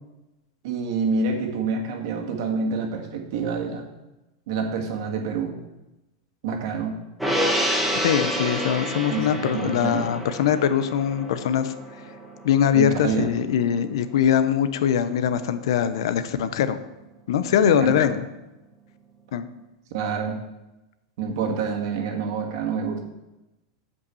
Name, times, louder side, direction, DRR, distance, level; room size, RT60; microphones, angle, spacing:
voice 1, 0.6-3.9 4.5-5.5 6.4-7.0 9.1-10.1 12.7-13.3 17.6-18.1 19.9-20.4 21.2-23.0, right 4 dB, 55° right, 2 dB, 1.7 m, -27 dB
Gong, 7.2-13.8 14.2-14.3, equal, ahead, 1.0 m, -29 dB
voice 2, 8.0-11.7 12.4-16.8 17.3-18.3 19.3-19.5, left 9 dB, 75° left, 12 dB, 0.7 m, -22 dB
8.2 x 5.4 x 7.0 m, 0.99 s
supercardioid pair, 165°, 3 cm